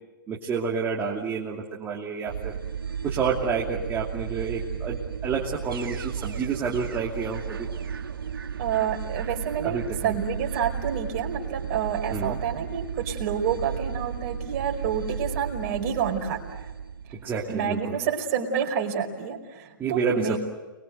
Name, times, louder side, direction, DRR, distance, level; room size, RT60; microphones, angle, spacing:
voice 1, 0.3-2.6 3.0-7.7 9.6-10.1 12.1-12.4 17.2-18.0 19.8-20.4, right 5 dB, 20° right, -3 dB, 2.9 m, -29 dB
sound 1, 2.3-17.6, right 7 dB, 85° right, 2.4 m, -34 dB
voice 2, 8.6-16.7 17.5-20.4, right 7 dB, 45° right, 3 dB, 5.1 m, -29 dB
29.5 x 22.5 x 8.0 m, 1.2 s
hypercardioid pair, 140°, 12 cm